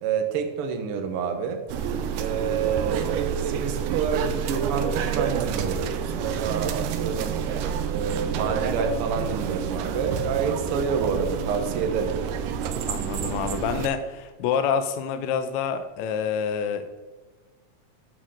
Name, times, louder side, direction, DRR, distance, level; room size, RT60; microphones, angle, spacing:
voice 1, 0.0-1.6 2.2-7.4 7.9-12.1, right 6 dB, 60° right, 5 dB, 1.5 m, -28 dB
sound 1, 1.7-13.9, right 7 dB, 85° right, 2.3 m, -28 dB
voice 2, 12.9-17.0, left 7 dB, 80° left, 9 dB, 1.7 m, -27 dB
12.5 x 6.3 x 3.7 m, 1.3 s
omnidirectional pair, 3.7 m